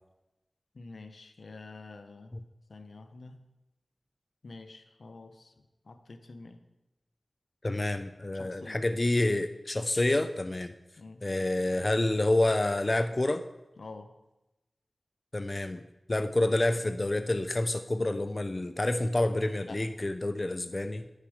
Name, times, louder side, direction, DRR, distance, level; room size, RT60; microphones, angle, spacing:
voice 1, 0.7-2.3 2.7-3.5 4.4-5.5 5.9-6.6 8.3-8.8 11.0-11.2 13.8-14.1 19.7-19.8, left 3 dB, 80° left, 9 dB, 0.7 m, -47 dB
voice 2, 7.6-10.7 11.2-13.4 15.3-15.8 16.1-21.0, left 2 dB, 40° left, 9 dB, 0.4 m, -28 dB
9.5 x 6.6 x 4.9 m, 0.99 s
cardioid pair, 45°, 0 cm